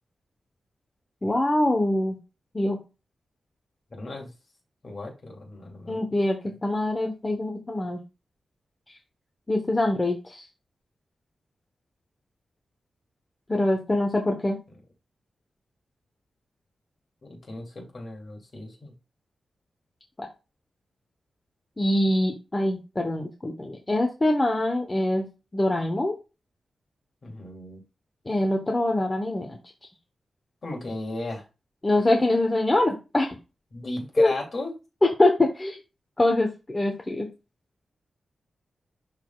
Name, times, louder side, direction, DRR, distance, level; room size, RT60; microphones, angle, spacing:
voice 1, 1.2-2.2 2.5-2.8 5.9-8.0 9.5-10.4 13.5-14.6 20.2-20.3 21.8-25.3 25.5-26.1 28.3-29.6 31.8-33.3 34.2-34.3 35.2-35.8 36.2-37.3, left 1 dB, 20° left, 2 dB, 0.9 m, -24 dB
voice 2, 3.9-4.3 4.8-6.1 17.3-18.9 27.2-27.8 30.6-31.4 33.7-34.7, left 2 dB, 40° left, 0 dB, 2.4 m, -35 dB
11.0 x 3.9 x 2.3 m, 0.28 s
wide cardioid pair, 175°, 0 cm